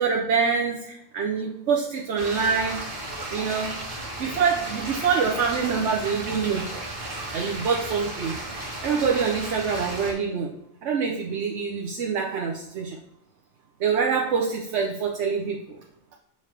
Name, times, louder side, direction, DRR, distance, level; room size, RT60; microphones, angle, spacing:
voice 1, 0.0-2.8 3.3-3.8 4.2-6.6 7.1-8.4 8.8-10.5 10.8-13.0 13.8-15.8, right 6 dB, 80° right, -1 dB, 1.1 m, -25 dB
sound 1, 2.2-10.1, right 1 dB, 50° right, 1.5 m, -34 dB
6.5 x 5.3 x 3.2 m, 0.79 s
omnidirectional pair, 1.2 m